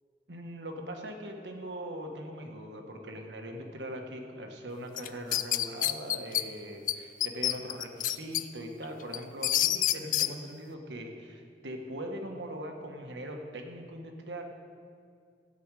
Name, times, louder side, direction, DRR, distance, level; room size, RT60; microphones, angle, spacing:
voice 1, 0.3-14.4, equal, 90° right, 3 dB, 1.4 m, -41 dB
sound 1, 5.0-6.4 6.9-7.0 7.2-8.4 8.8-10.3, left 12 dB, 45° left, 0.4 m, -27 dB
15.5 x 8.7 x 4.8 m, 2.2 s
head